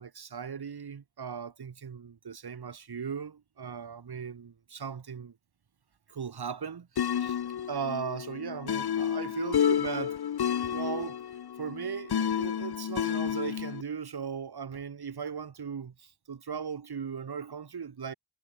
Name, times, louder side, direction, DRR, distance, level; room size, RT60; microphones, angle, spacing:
voice 1, 0.0-5.4 6.1-7.4 7.7-10.2 10.6-11.2 11.6-18.1, right 6 dB, 80° right, 1.1 m, -37 dB
sound 1, 7.0-13.8, left 9 dB, 80° left, 0.6 m, -30 dB
wide cardioid pair, 50°, 38 cm